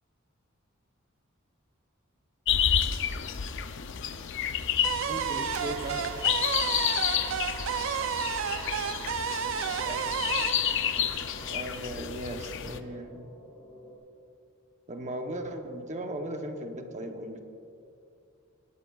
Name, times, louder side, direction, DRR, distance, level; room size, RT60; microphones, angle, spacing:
sound 1, 2.5-12.8, left 9 dB, 60° left, 0.5 m, -30 dB
sound 2, 4.8-11.8, right 8 dB, 65° right, 0.4 m, -32 dB
voice 1, 5.1-6.0 9.6-10.1 10.8-13.3 14.9-17.4, right 1 dB, 35° right, 5 dB, 0.9 m, -38 dB
sound 3, 6.0-14.0, left 1 dB, 35° left, 2.5 m, -51 dB
20.0 x 12.5 x 2.4 m, 2.5 s
head